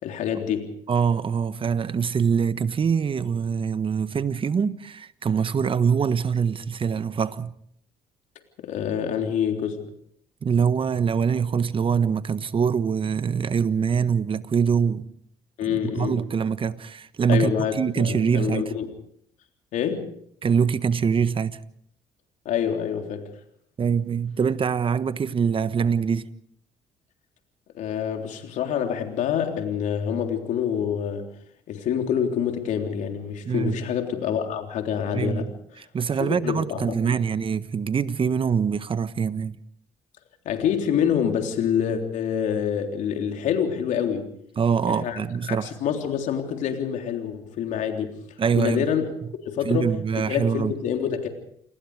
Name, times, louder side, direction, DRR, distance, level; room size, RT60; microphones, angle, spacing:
voice 1, 0.0-0.7 8.6-9.8 15.6-16.2 17.3-18.9 19.7-20.1 22.5-23.3 27.7-31.3 31.7-35.5 36.2-37.2 40.5-44.3 44.8-45.2 45.4-48.2 48.5-49.1 49.5-51.3, left 8 dB, 70° left, 3.5 m, -26 dB
voice 2, 0.9-7.5 10.4-15.1 15.7-18.6 20.4-21.6 23.8-26.3 33.4-33.7 35.1-39.6 44.6-45.7 48.4-48.8 49.6-50.7, right 6 dB, 40° right, 1.3 m, -24 dB
28.5 x 20.0 x 4.9 m
supercardioid pair, 60°, 13 cm